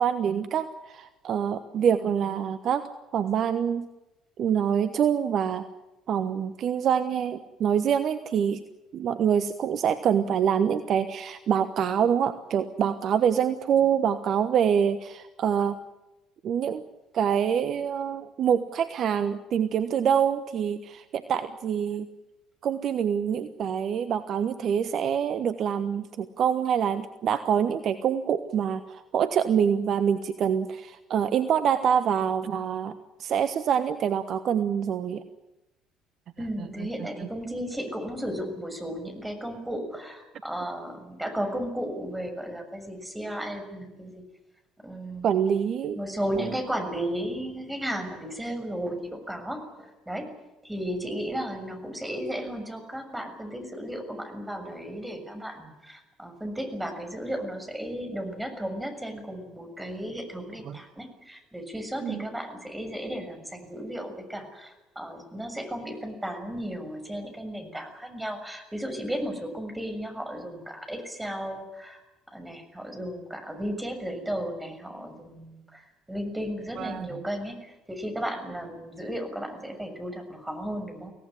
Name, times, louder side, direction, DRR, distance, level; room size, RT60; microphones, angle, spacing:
voice 1, 0.0-2.9 3.1-3.9 4.4-5.6 6.1-8.6 8.9-15.8 16.4-16.8 17.1-22.1 22.6-35.2 36.6-36.7 37.2-37.3 45.2-46.0 46.4-46.5 60.7-60.8 62.0-62.3 76.8-77.1, right 8 dB, 50° right, 11 dB, 1.1 m, -25 dB
voice 2, 36.4-44.2 44.8-45.4 45.9-50.3 50.6-72.0 72.3-81.1, equal, 10° right, 6 dB, 6.9 m, -34 dB
25.0 x 17.5 x 9.9 m, 1.0 s
figure-of-eight pair, 55°, 0 cm